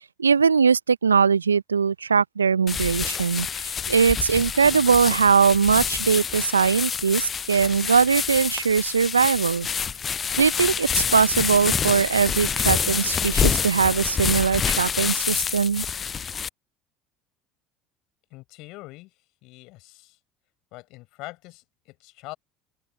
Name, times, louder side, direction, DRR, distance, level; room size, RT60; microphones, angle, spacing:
voice 1, 0.2-9.7 10.4-15.8, right 6 dB, 85° right, 0.5 m, -21 dB
sound 1, 2.7-16.5, left 6 dB, 30° left, 0.4 m, -27 dB
voice 2, 18.3-20.2 20.7-22.4, left 21 dB, 60° left, 7.0 m, -43 dB
open air
figure-of-eight pair, 65°, 0 cm